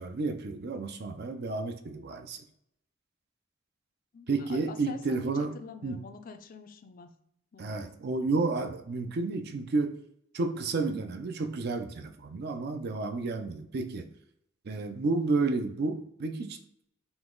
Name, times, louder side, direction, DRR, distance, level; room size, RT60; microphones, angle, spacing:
voice 1, 0.0-2.4 4.3-5.6 5.8-6.0 7.6-10.0 10.3-14.1 14.6-16.6, right 3 dB, 55° right, 7 dB, 0.4 m, -31 dB
voice 2, 4.1-7.1 7.5-7.8, left 5 dB, 45° left, 8 dB, 0.4 m, -46 dB
3.9 x 2.9 x 3.7 m, 0.74 s
head